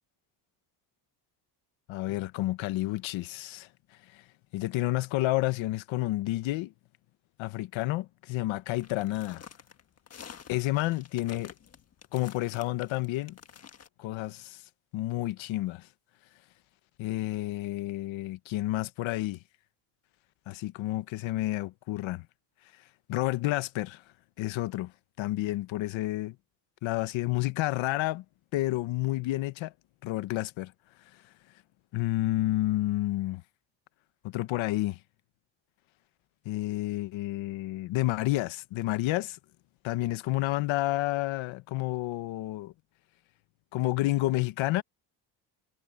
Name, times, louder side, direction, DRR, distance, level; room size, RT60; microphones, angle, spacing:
voice 1, 1.9-3.7 4.1-4.2 4.5-6.7 7.4-9.4 10.5-11.5 12.1-13.4 14.0-14.6 14.9-15.9 17.0-19.4 20.5-22.3 23.1-24.0 24.4-24.9 25.2-26.4 26.8-28.2 28.5-29.7 30.0-30.7 31.9-33.4 34.2-35.0 36.4-39.4 39.8-42.7 43.7-44.8, left 17 dB, 85° left, 1.1 m, -30 dB
sound 1, 8.8-13.9, left 7 dB, 35° left, 1.4 m, -49 dB
cardioid pair, 140°, 45 cm